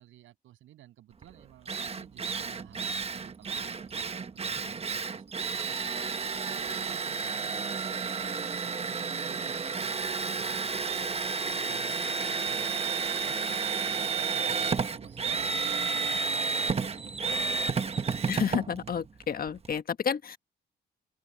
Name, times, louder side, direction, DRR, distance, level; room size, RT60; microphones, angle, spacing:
voice 1, 0.0-6.0 6.4-8.3 8.6-12.9 13.3-18.4, right 14 dB, 85° right, 7.6 m, -54 dB
Drill, 1.2-1.3 1.7-19.8, right 5 dB, 30° right, 1.1 m, -31 dB
voice 2, 18.3-20.4, left 7 dB, 50° left, 1.6 m, -30 dB
open air
cardioid pair, 90°, 20 cm